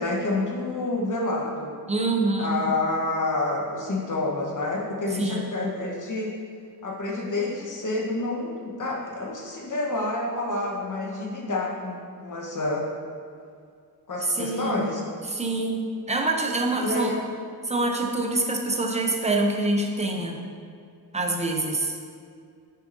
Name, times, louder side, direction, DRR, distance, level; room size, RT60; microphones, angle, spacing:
voice 1, 0.0-1.8 2.4-6.3 6.8-12.9 14.1-15.0 16.8-17.2, left 2 dB, 50° left, -2 dB, 1.1 m, -28 dB
voice 2, 1.9-2.6 5.1-5.5 14.3-14.9 15.3-17.1 17.6-20.4 21.1-21.9, right 2 dB, 20° right, 2 dB, 0.6 m, -26 dB
7.3 x 6.5 x 2.6 m, 2.3 s
wide cardioid pair, 140°, 38 cm